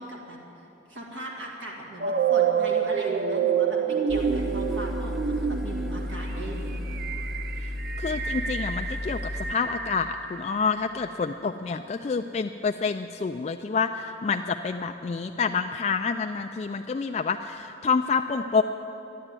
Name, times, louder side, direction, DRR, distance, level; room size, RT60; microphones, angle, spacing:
voice 1, 0.0-6.8, right 1 dB, 85° right, -2 dB, 2.0 m, -39 dB
sound 1, 2.0-11.0, right 7 dB, 50° right, 0.5 m, -28 dB
sound 2, 4.1-9.5, left 1 dB, ahead, 0.6 m, -33 dB
voice 2, 8.0-9.2 9.5-18.6, left 5 dB, 35° left, 6 dB, 0.3 m, -28 dB
13.0 x 11.0 x 8.9 m, 3.0 s
head